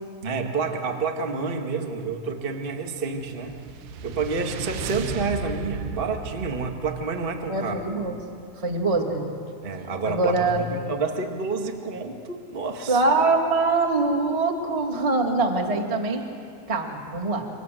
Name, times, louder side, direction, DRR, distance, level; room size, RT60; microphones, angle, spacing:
voice 1, 0.2-3.6 4.0-7.8 9.6-13.0, right 4 dB, 65° right, 3 dB, 0.5 m, -29 dB
sound 1, 3.1-8.5, right 5 dB, 85° right, 3.1 m, -36 dB
voice 2, 7.5-8.2 8.6-9.3 10.0-10.7 12.9-16.2 16.7-17.4, right 3 dB, 15° right, 3 dB, 1.2 m, -23 dB
28.0 x 25.5 x 7.7 m, 2.3 s
omnidirectional pair, 4.4 m